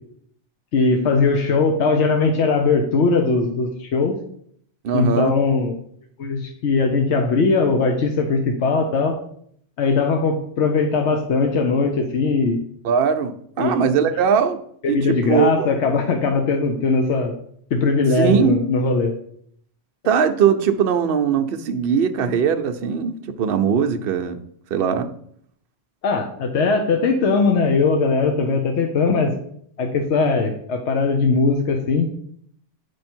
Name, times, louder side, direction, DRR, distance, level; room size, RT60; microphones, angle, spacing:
voice 1, 0.7-4.1 4.9-5.7 6.2-9.2 9.8-12.6 13.6-13.8 14.8-17.3 17.7-19.1 26.0-29.3 29.8-32.1, left 4 dB, 70° left, 3 dB, 1.0 m, -20 dB
voice 2, 4.8-5.3 12.8-14.6 14.9-15.7 18.2-18.5 20.0-24.4 24.7-25.1, right 7 dB, 60° right, 7 dB, 0.7 m, -20 dB
9.3 x 3.1 x 4.3 m, 0.66 s
omnidirectional pair, 1.3 m